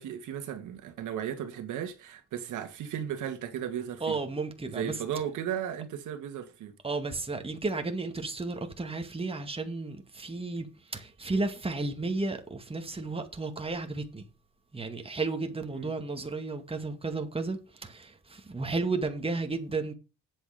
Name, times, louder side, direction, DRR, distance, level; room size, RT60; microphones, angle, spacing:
voice 1, 0.0-4.2 4.7-6.7 15.7-15.9, right 9 dB, 80° right, 1.9 m, -35 dB
voice 2, 4.0-5.0 6.8-14.2 14.7-19.9, right 3 dB, 20° right, 2.1 m, -33 dB
8.6 x 7.8 x 5.0 m
cardioid pair, 90°, 30 cm